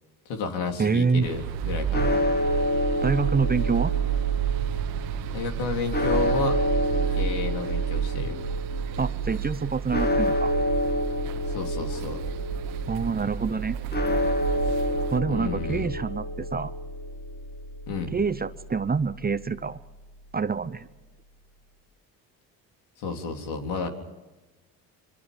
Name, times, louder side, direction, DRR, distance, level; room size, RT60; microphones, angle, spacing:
voice 1, 0.3-2.2 2.5-2.6 5.3-6.6 7.2-8.4 11.5-12.2 15.3-15.9 17.9-18.1 23.0-23.9, left 4 dB, 75° left, 3 dB, 3.7 m, -32 dB
voice 2, 0.8-1.3 3.0-3.9 9.0-10.5 12.9-13.8 15.1-16.7 18.1-19.8 20.3-20.9, right 5 dB, 20° right, 14 dB, 0.9 m, -26 dB
sound 1, 1.2-15.2, right 11 dB, 85° right, 1.6 m, -31 dB
sound 2, 1.9-20.2, left 1 dB, 20° left, 2.2 m, -29 dB
26.5 x 24.5 x 5.2 m, 1.1 s
supercardioid pair, 70°, 43 cm